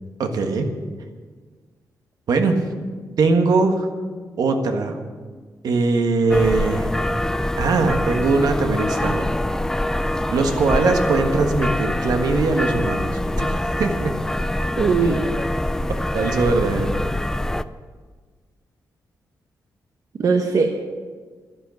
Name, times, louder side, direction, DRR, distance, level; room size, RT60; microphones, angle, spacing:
voice 1, 0.2-0.7 2.3-2.7 3.2-3.9 4.4-5.0 5.6-6.9 7.6-9.3 10.3-13.5 13.8-14.1 16.1-16.9, right 3 dB, 75° right, 5 dB, 1.5 m, -21 dB
sound 1, 6.3-17.6, left 1 dB, 10° left, 0.4 m, -24 dB
voice 2, 14.8-15.3 20.2-20.8, right 5 dB, 55° right, 3 dB, 1.1 m, -19 dB
11.5 x 11.0 x 7.2 m, 1.5 s
wide cardioid pair, 120°, 7 cm